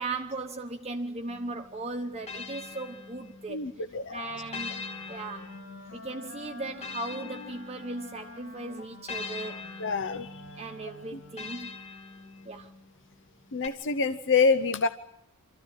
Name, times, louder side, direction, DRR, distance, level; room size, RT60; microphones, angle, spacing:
voice 1, 0.0-3.7 4.1-4.8 5.1-5.5 5.9-9.7 10.6-11.7 12.4-12.7, right 2 dB, 30° right, 1.0 m, -37 dB
sound 1, 1.3-3.7 4.5-8.3 9.1-12.8 13.6-13.7, left 4 dB, 30° left, 2.0 m, -43 dB
voice 2, 3.5-4.4 9.8-10.4 13.5-14.9, left 4 dB, 55° left, 0.8 m, -26 dB
Wind instrument woodwind instrument, 4.2-11.6, left 1 dB, 85° left, 3.5 m, -48 dB
25.5 x 14.0 x 9.6 m
head